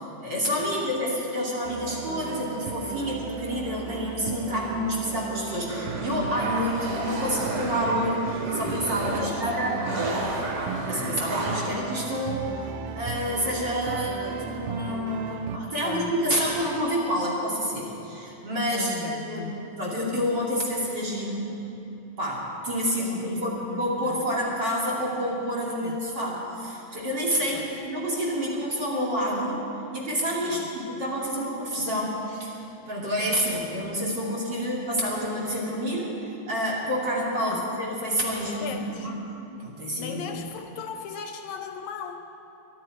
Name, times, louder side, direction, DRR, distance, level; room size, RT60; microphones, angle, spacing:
voice 1, 0.2-9.8 10.9-12.5 13.0-19.5 19.8-21.5 22.2-29.6 29.9-39.2 39.6-40.3, equal, 35° right, -3 dB, 2.9 m, -28 dB
sound 1, 1.6-15.6, right 7 dB, 90° right, 2.2 m, -37 dB
sound 2, 5.7-11.7, right 2 dB, 70° right, 3.4 m, -32 dB
voice 2, 9.0-10.4 15.8-16.1 18.7-19.6 23.0-24.2 25.8-26.0 27.5-27.8 30.5-30.7 37.4-37.7 38.4-39.1 40.0-42.3, left 7 dB, 75° left, 6 dB, 1.9 m, -38 dB
23.0 x 11.5 x 4.8 m, 2.9 s
omnidirectional pair, 3.6 m